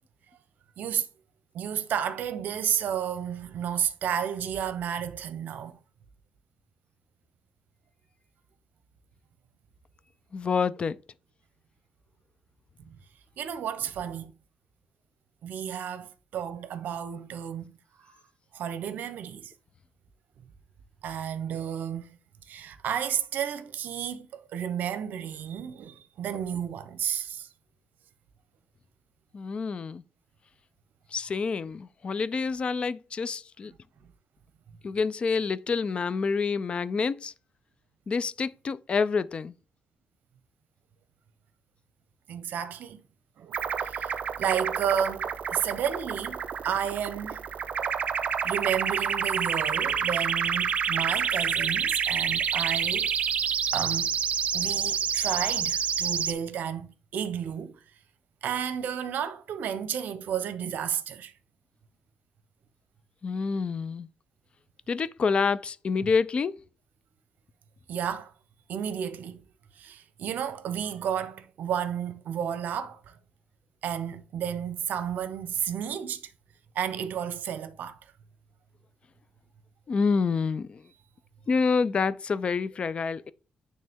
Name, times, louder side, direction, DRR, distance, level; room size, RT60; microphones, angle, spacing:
voice 1, 0.8-1.1 1.5-5.8 12.8-13.0 13.4-14.3 15.4-17.7 18.0-18.1 18.5-19.5 21.0-22.2 22.5-27.5 42.3-43.0 43.4-47.4 48.3-53.3 53.7-54.2 54.5-57.8 58.4-61.3 67.9-68.3 68.7-69.4 69.7-73.2 73.8-76.2 76.7-78.0, right 8 dB, 80° right, 0.8 m, -32 dB
voice 2, 10.3-11.0 29.3-30.0 31.1-33.7 34.8-37.3 38.1-39.5 63.2-64.1 64.9-66.5 79.9-80.8 81.5-83.3, left 5 dB, 40° left, 0.4 m, -27 dB
sound 1, 43.5-56.3, right 7 dB, 50° right, 0.5 m, -28 dB
9.5 x 3.2 x 3.6 m
cardioid pair, 125°, 3 cm